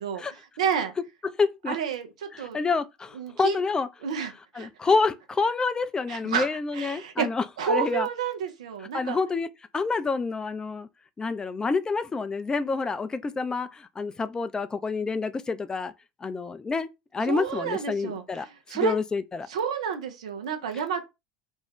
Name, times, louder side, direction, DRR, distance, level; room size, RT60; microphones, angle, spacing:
voice 1, 0.6-0.9 1.7-2.6 3.1-3.6 4.0-4.7 6.1-6.5 6.7-7.3 7.6-9.2 17.3-18.9 19.5-21.0, right 7 dB, 85° right, 0.6 m, -30 dB
voice 2, 1.4-1.8 2.3-3.9 4.5-8.1 8.9-9.5 9.7-10.9 11.2-15.9 16.2-19.5, left 4 dB, 20° left, 0.4 m, -28 dB
2.6 x 2.2 x 3.4 m
hypercardioid pair, 80°, 3 cm